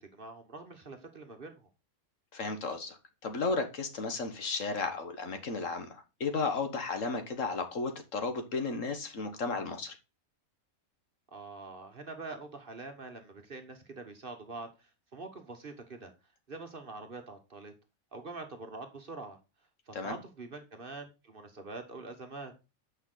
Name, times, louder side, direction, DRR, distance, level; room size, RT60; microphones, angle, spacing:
voice 1, 0.0-1.7 11.3-16.1 16.5-17.7 18.1-19.4 19.9-22.5, right 3 dB, 40° right, 6 dB, 1.4 m, -45 dB
voice 2, 2.3-3.0 3.2-10.0 19.9-20.2, left 4 dB, 60° left, 7 dB, 1.6 m, -34 dB
8.6 x 5.6 x 3.9 m, 0.28 s
omnidirectional pair, 1.5 m